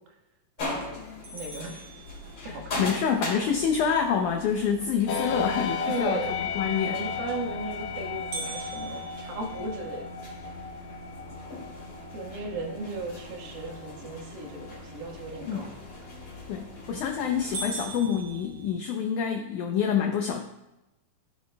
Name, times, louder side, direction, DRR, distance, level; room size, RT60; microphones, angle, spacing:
sound 1, 0.6-17.7, left 2 dB, 35° left, 3.1 m, -41 dB
voice 1, 0.6-1.0 1.3-1.8 2.4-2.8 5.9-6.4 6.8-10.1 12.1-15.7, right 2 dB, 75° right, -1 dB, 3.4 m, -36 dB
sound 2, 1.2-2.8 8.3-10.5 11.0-11.1 11.6-11.7 12.3-12.7 16.3-16.7 17.1-17.2 17.5-19.3, right 3 dB, 50° right, 3.5 m, -40 dB
voice 2, 2.5-6.2 6.6-7.0 15.5-15.7 16.5-20.4, left 7 dB, 85° left, 3 dB, 1.7 m, -27 dB
sound 3, 5.1-18.7, left 5 dB, 70° left, 1.9 m, -36 dB
15.0 x 7.8 x 2.2 m, 0.96 s
omnidirectional pair, 4.4 m